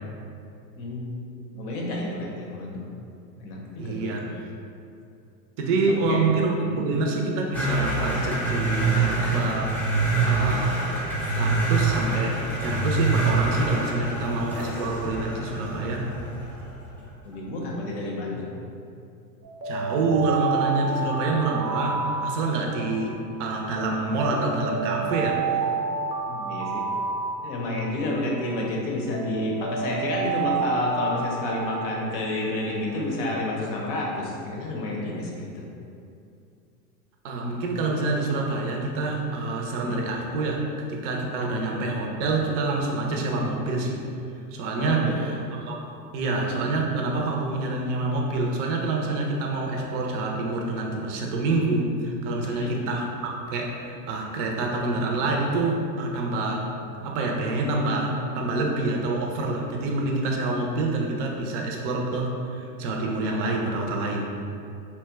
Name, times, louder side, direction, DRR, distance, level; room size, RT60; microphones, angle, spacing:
voice 1, 0.8-1.3 1.5-2.9 3.4-4.1 6.1-6.2 6.6-6.8 17.3-18.5 26.3-26.8 27.4-35.6 39.8-40.0 44.8-45.2 52.5-52.7, left 1 dB, 45° left, -2 dB, 0.6 m, -30 dB
voice 2, 3.8-4.5 5.6-9.7 10.3-10.9 11.3-16.1 19.6-25.7 37.2-44.1 44.5-56.7 57.0-64.4, right 2 dB, 50° right, 0 dB, 0.6 m, -27 dB
sound 1, 7.5-16.9, right 3 dB, 5° left, 0.5 m, -25 dB
Alarm, 19.4-23.6 24.1-28.6 29.1-32.9, right 5 dB, 85° right, 0.7 m, -30 dB
2.9 x 2.2 x 3.3 m, 2.5 s
hypercardioid pair, 115°, 49 cm